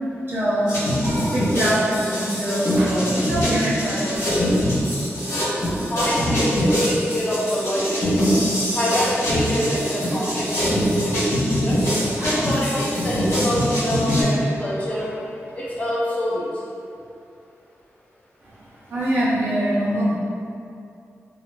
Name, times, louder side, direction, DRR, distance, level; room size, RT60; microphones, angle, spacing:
voice 1, 0.3-4.5 5.3-5.9 10.0-10.8 12.1-12.4 14.9-15.0 18.4-20.2, equal, 50° right, -9 dB, 0.6 m, -25 dB
sound 1, 0.7-14.2, equal, 85° left, 1.4 m, -23 dB
voice 2, 5.9-8.2 8.7-11.8 12.2-15.1 15.5-16.5, equal, 25° left, -8 dB, 0.7 m, -26 dB
2.8 x 2.7 x 2.9 m, 2.5 s
wide cardioid pair, 140°, 5 cm